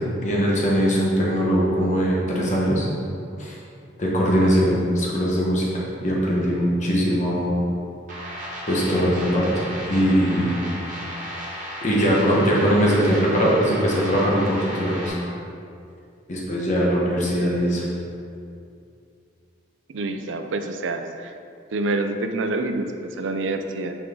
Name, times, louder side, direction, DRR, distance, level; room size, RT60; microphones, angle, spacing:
voice 1, 0.2-2.9 3.4-3.5 4.0-5.7 6.0-7.6 8.7-10.6 11.8-15.1 16.3-17.8, equal, 40° left, -4 dB, 1.2 m, -21 dB
sound 1, 8.1-15.1, equal, 45° right, 1.4 m, -35 dB
voice 2, 19.9-21.3 21.7-23.9, right 2 dB, 85° right, 6 dB, 0.5 m, -27 dB
6.0 x 4.5 x 3.8 m, 2.5 s
head